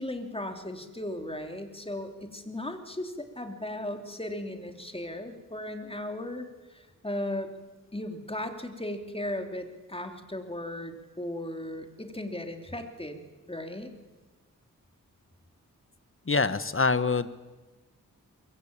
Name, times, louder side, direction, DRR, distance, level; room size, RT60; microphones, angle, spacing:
voice 1, 0.0-6.5 6.7-7.5 7.9-13.9, left 1 dB, 15° left, 5 dB, 3.3 m, -36 dB
voice 2, 16.3-17.4, left 4 dB, 40° left, 13 dB, 1.4 m, -25 dB
23.0 x 22.0 x 8.9 m, 1.2 s
wide cardioid pair, 65°, 34 cm